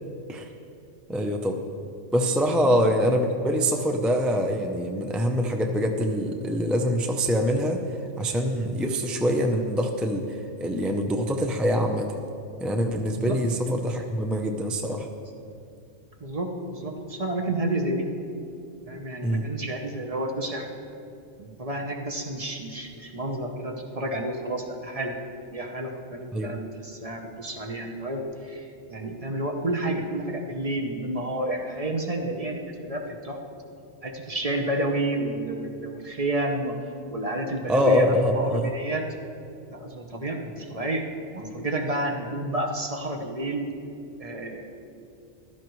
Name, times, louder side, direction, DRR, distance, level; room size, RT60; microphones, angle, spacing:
voice 1, 1.1-1.6 2.1-7.8 8.2-10.3 10.6-12.1 12.6-15.1 19.2-19.5 26.3-26.5 37.7-38.7, equal, ahead, 3 dB, 0.3 m, -24 dB
voice 2, 16.2-18.0 18.9-20.7 21.4-25.2 25.5-33.4 34.0-36.7 37.1-39.0 39.7-41.0 41.3-43.7 44.2-44.7, right 1 dB, 35° right, 2 dB, 0.9 m, -30 dB
15.0 x 12.5 x 3.1 m, 2.6 s
omnidirectional pair, 1.2 m